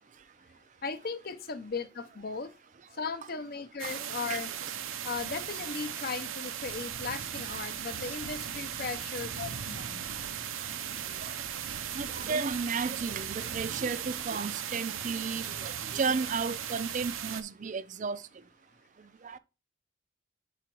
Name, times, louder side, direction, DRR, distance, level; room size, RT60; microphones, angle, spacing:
voice 1, 0.8-2.5 3.0-4.5 5.0-10.0, left 5 dB, 45° left, 0.6 m, -37 dB
voice 2, 3.8-4.4 11.2-11.4 11.9-18.2 19.2-19.4, right 5 dB, 40° right, 0.4 m, -33 dB
sound 1, 3.8-17.4, right 9 dB, 85° right, 0.7 m, -37 dB
4.9 x 4.9 x 4.4 m
head